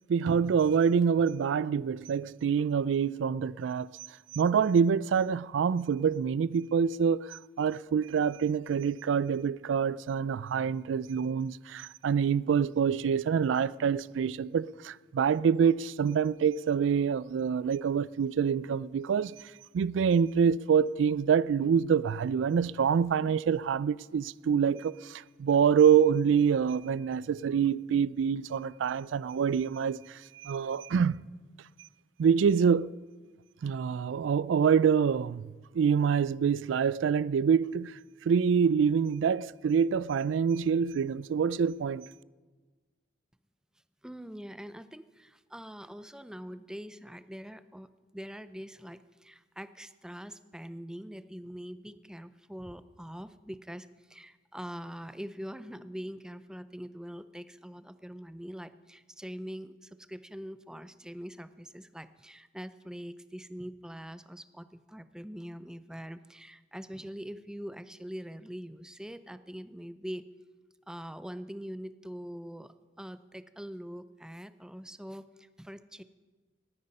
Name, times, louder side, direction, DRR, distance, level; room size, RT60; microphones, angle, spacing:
voice 1, 0.1-3.9 4.3-19.3 19.7-31.2 32.2-32.9 33.6-38.0 38.3-42.1, right 7 dB, 90° right, 0.3 m, -26 dB
voice 2, 44.0-70.3 70.9-76.0, equal, 5° right, 0.4 m, -43 dB
18.5 x 9.6 x 5.4 m
head